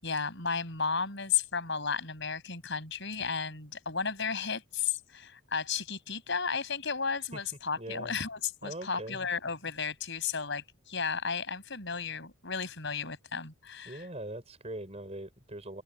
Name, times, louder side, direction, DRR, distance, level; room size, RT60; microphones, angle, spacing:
voice 1, 0.0-14.0, left 6 dB, 55° left, 6.9 m, -33 dB
voice 2, 7.8-8.1 8.6-9.3 13.9-15.8, right 1 dB, 30° right, 5.6 m, -41 dB
open air
head